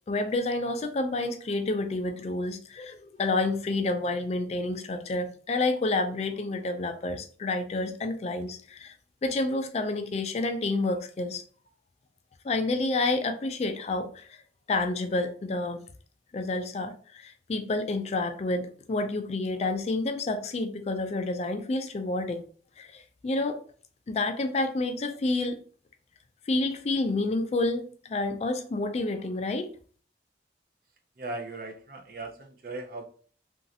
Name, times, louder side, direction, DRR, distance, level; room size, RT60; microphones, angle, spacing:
voice 1, 0.1-8.9 9.2-11.4 12.4-14.4 14.7-15.9 16.3-22.4 22.8-23.6 24.1-25.6 26.5-29.7, left 2 dB, 35° left, 0.3 m, -29 dB
voice 2, 31.2-33.1, right 2 dB, 55° right, 0.5 m, -38 dB
3.0 x 2.5 x 2.7 m
head